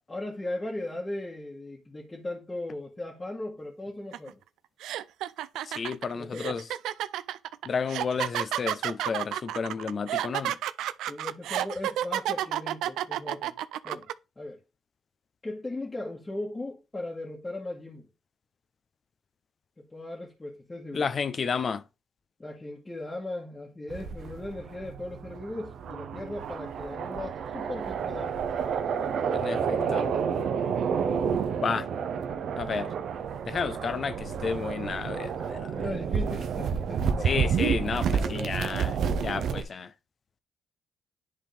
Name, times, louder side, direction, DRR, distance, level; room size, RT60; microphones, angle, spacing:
voice 1, 0.1-4.4 6.1-6.6 11.1-13.5 13.8-14.1 14.4-14.6 15.4-18.1 19.9-21.1 22.4-28.4 29.2-30.5 35.7-37.4 38.1-38.5, left 2 dB, 20° left, 1.7 m, -38 dB
sound 1, 4.1-4.3 4.8-14.1, right 12 dB, 85° right, 0.4 m, -31 dB
voice 2, 5.8-6.6 7.7-10.5 20.9-21.8 29.4-30.0 31.6-31.9 32.6-32.9 33.5-35.7 37.2-38.9 39.2-39.9, left 5 dB, 45° left, 0.7 m, -31 dB
sound 2, 23.9-39.6, right 6 dB, 65° right, 0.8 m, -30 dB
10.5 x 3.9 x 3.4 m
cardioid pair, 90°, 0 cm